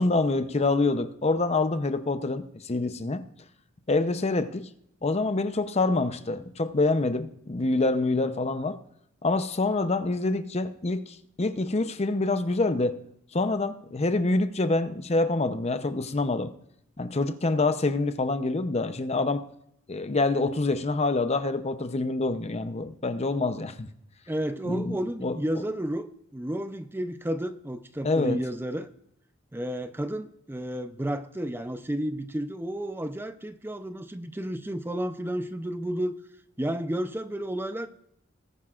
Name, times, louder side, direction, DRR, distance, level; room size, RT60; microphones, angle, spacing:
voice 1, 0.0-3.2 3.9-4.7 5.0-8.8 9.2-13.0 13.3-16.5 17.0-19.4 19.9-23.9 24.7-25.4 28.0-28.4, left 3 dB, 30° left, 0.7 m, -26 dB
voice 2, 24.3-28.9 29.5-36.1 36.6-37.9, right 1 dB, 10° right, 0.5 m, -32 dB
20.0 x 9.3 x 2.4 m
head